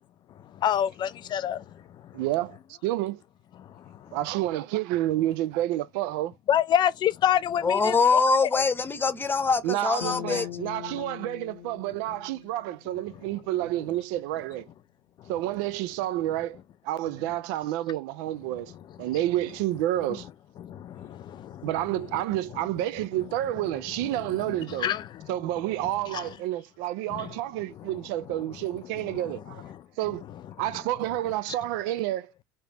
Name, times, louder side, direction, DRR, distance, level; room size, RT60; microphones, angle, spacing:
voice 1, 0.5-2.1 3.6-4.2 6.5-8.2 8.5-8.6 11.0-11.1 20.6-21.7 24.2-25.3 26.1-26.3 27.1-27.3 29.1-29.2, left 10 dB, 40° left, 0.4 m, -28 dB
voice 2, 2.1-3.2 4.1-6.3 9.6-14.7 15.3-16.6 16.8-18.7 19.0-20.3 21.6-24.9 25.3-29.6 30.0-30.2 30.6-32.3, right 14 dB, 65° right, 0.3 m, -29 dB
voice 3, 7.6-10.5, left 4 dB, 20° left, 0.8 m, -23 dB
sound 1, 10.0-13.4, left 12 dB, 80° left, 0.7 m, -41 dB
3.3 x 2.8 x 2.9 m
hypercardioid pair, 80°, 11 cm